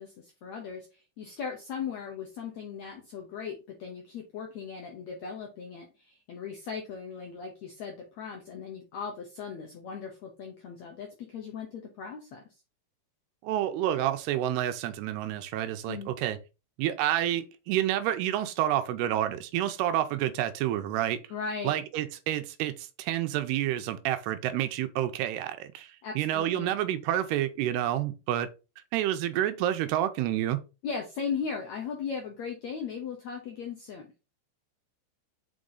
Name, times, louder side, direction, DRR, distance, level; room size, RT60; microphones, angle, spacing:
voice 1, 0.0-12.4 15.9-16.1 21.3-21.7 26.0-26.7 30.8-34.1, left 6 dB, 80° left, 1.6 m, -38 dB
voice 2, 13.4-16.4 16.8-21.2 21.6-28.5 28.9-30.6, right 12 dB, 90° right, 2.7 m, -29 dB
6.1 x 4.9 x 3.9 m
omnidirectional pair, 4.7 m